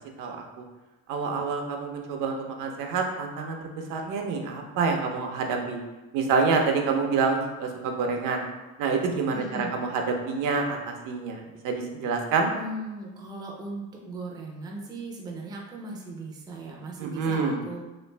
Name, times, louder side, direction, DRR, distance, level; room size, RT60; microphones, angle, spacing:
voice 1, 0.2-0.6 1.1-3.6 3.9-5.8 6.1-8.4 8.8-12.5 17.0-17.6, right 4 dB, 70° right, 3 dB, 0.6 m, -27 dB
voice 2, 9.3-9.8 12.5-17.9, right 2 dB, 15° right, -1 dB, 0.4 m, -38 dB
3.1 x 2.4 x 3.2 m, 1.1 s
cardioid pair, 140°, 32 cm